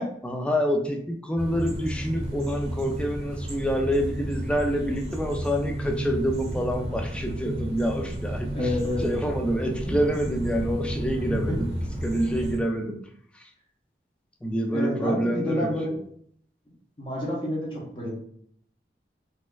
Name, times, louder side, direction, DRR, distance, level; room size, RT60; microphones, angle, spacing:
voice 1, 0.2-11.7 12.0-13.0 13.3-13.5 14.4-15.7, equal, 5° left, 2 dB, 0.3 m, -27 dB
sound 1, 1.4-12.6, right 1 dB, 35° right, 0.8 m, -32 dB
voice 2, 8.5-9.1 11.5-11.6 14.7-16.0 17.0-18.1, left 1 dB, 30° left, -4 dB, 0.8 m, -28 dB
4.1 x 2.4 x 2.2 m, 0.63 s
head